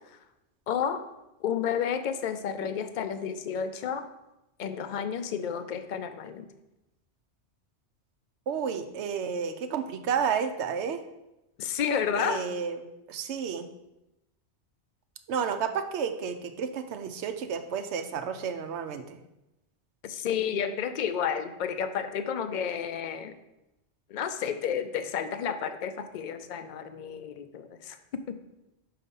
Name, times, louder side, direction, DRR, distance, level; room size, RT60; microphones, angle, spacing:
voice 1, 0.7-1.0 1.4-4.1 4.6-6.5 11.6-12.4 20.0-23.3 24.1-28.0 28.3-28.4, left 7 dB, 55° left, 9 dB, 0.6 m, -31 dB
voice 2, 8.5-11.0 12.1-13.7 15.3-19.2, right 6 dB, 85° right, 8 dB, 0.9 m, -31 dB
5.8 x 4.2 x 5.3 m, 0.92 s
omnidirectional pair, 1.1 m